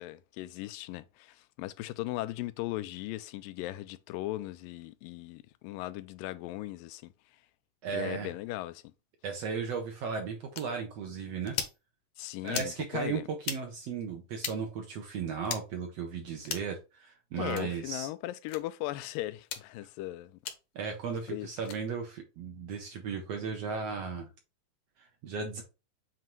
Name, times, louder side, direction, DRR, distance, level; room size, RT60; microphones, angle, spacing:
voice 1, 0.0-7.1 7.9-8.9 12.2-13.2 17.4-20.4 21.3-21.5, left 17 dB, 85° left, 2.2 m, -38 dB
voice 2, 7.8-8.3 9.2-11.6 12.4-18.1 20.8-24.3 25.0-25.6, right 6 dB, 65° right, 1.7 m, -36 dB
sound 1, 10.5-10.7 11.5-11.8 12.5-12.7 13.4-13.6 14.4-14.6 15.4-15.6 16.4-16.7 17.5-17.7 18.5-18.6 19.4-19.6 20.4-20.6 21.6-21.8, left 8 dB, 65° left, 1.7 m, -36 dB
7.5 x 2.8 x 4.4 m
omnidirectional pair, 3.9 m